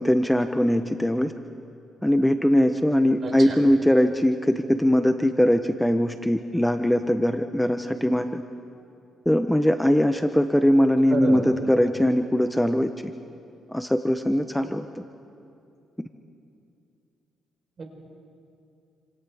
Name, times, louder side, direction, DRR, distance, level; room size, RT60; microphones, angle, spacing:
voice 1, 0.0-1.3 2.0-8.4 9.3-12.9 13.7-14.8, equal, 5° left, 8 dB, 0.7 m, -21 dB
voice 2, 3.2-3.6 11.1-11.4 17.8-17.9, right 4 dB, 45° right, 2 dB, 4.2 m, -29 dB
28.5 x 26.5 x 3.5 m, 2.6 s
cardioid pair, 90°, 0 cm